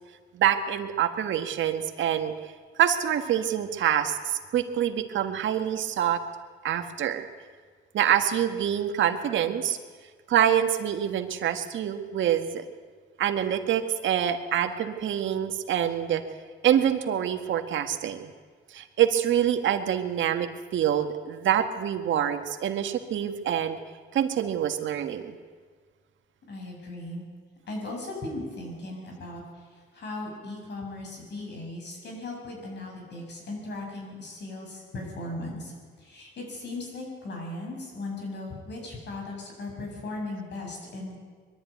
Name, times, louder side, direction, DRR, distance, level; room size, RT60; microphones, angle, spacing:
voice 1, 0.3-2.5 2.8-6.2 6.6-7.2 7.9-9.8 10.3-12.6 13.2-16.2 16.6-18.3 18.7-23.8 24.1-25.3, right 10 dB, 75° right, 7 dB, 1.7 m, -26 dB
voice 2, 26.5-27.2 27.7-29.4 29.9-35.7 36.0-41.2, left 2 dB, 60° left, 1 dB, 7.4 m, -37 dB
22.5 x 12.5 x 9.4 m, 1.6 s
cardioid pair, 90°, 20 cm